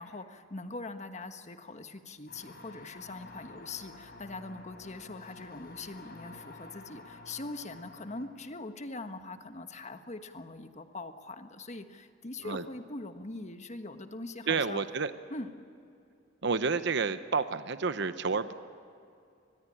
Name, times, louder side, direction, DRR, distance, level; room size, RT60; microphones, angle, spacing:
voice 1, 0.0-14.8 15.3-15.5, left 2 dB, 40° left, 8 dB, 1.4 m, -42 dB
sound 1, 2.3-8.3, left 2 dB, 55° left, 4.0 m, -50 dB
voice 2, 14.5-15.1 16.4-18.5, right 5 dB, 65° right, 11 dB, 0.9 m, -30 dB
23.5 x 21.0 x 9.9 m, 2.5 s
head